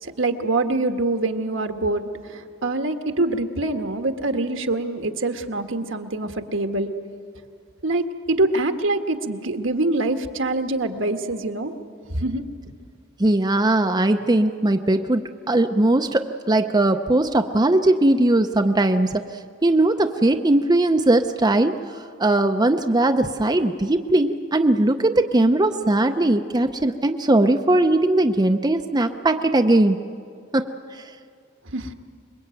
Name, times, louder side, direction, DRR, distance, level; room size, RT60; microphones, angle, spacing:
voice 1, 0.0-6.9 7.8-11.7 12.1-12.4 31.7-31.9, right 2 dB, 70° right, 6 dB, 1.5 m, -24 dB
voice 2, 13.2-19.2 19.6-30.0 30.5-31.0, right 2 dB, 20° right, 6 dB, 0.6 m, -19 dB
26.0 x 22.0 x 9.0 m, 2.2 s
head